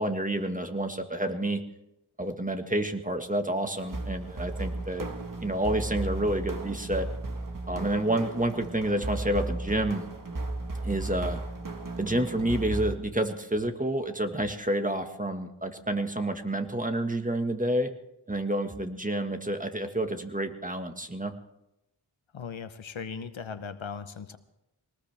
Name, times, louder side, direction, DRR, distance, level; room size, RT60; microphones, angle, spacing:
voice 1, 0.0-1.6 2.2-5.1 5.4-7.1 7.7-10.0 10.8-11.4 12.0-17.9 18.3-21.3, right 1 dB, 15° right, 6 dB, 1.6 m, -29 dB
sound 1, 3.8-13.0, right 2 dB, 40° right, 1.7 m, -35 dB
voice 2, 22.3-24.4, left 6 dB, 75° left, 11 dB, 1.0 m, -38 dB
21.5 x 19.0 x 3.5 m, 0.90 s
wide cardioid pair, 65°, 47 cm